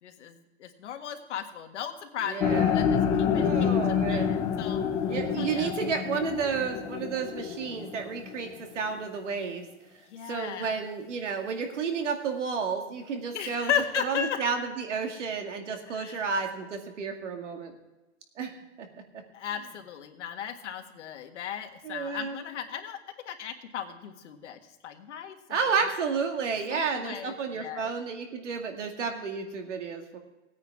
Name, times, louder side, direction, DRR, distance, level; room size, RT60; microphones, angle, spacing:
voice 1, 0.0-4.8 5.4-5.7 10.1-10.7 13.3-14.4 15.9-16.3 19.3-23.0 23.2-25.7 26.7-27.9, left 9 dB, 75° left, 5 dB, 1.7 m, -36 dB
voice 2, 2.2-2.8 3.3-4.3 5.1-9.7 10.3-13.7 14.0-17.7 18.4-18.5 18.8-18.9 21.8-22.4 25.5-30.2, right 5 dB, 85° right, 4 dB, 2.2 m, -31 dB
sound 1, 2.4-8.5, left 7 dB, 10° left, 0.3 m, -28 dB
17.5 x 9.4 x 3.6 m, 1.1 s
supercardioid pair, 155°, 35 cm